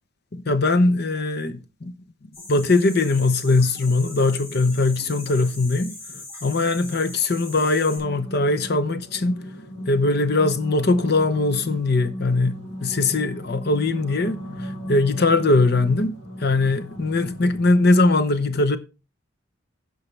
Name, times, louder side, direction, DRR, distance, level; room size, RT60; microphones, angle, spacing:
voice 1, 0.3-1.9 2.5-5.9 6.4-9.4 9.9-18.8, left 2 dB, 50° left, 0.8 m, -21 dB
sound 1, 2.3-8.0, left 2 dB, 30° left, 6.6 m, -40 dB
sound 2, 7.9-17.9, equal, 75° left, 2.4 m, -37 dB
15.5 x 5.6 x 3.3 m
head